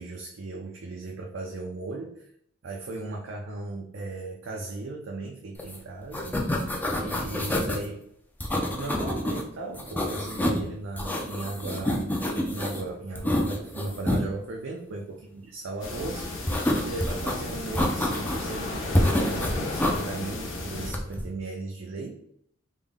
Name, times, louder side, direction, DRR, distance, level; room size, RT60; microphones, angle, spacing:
voice 1, 0.0-2.3 2.6-6.4 6.9-8.1 8.5-12.1 12.5-22.1, right 3 dB, 65° right, 0 dB, 0.4 m, -37 dB
sound 1, 5.6-5.8 6.0-7.8 8.4-9.4 9.7-10.7 11.0-12.8 13.2-14.2 16.5-17.3 17.8-18.5 18.9-20.0 20.8-21.2, left 1 dB, 10° left, 0.4 m, -27 dB
sound 2, 15.8-20.9, left 2 dB, 70° left, 0.8 m, -34 dB
3.5 x 2.1 x 3.5 m, 0.68 s
head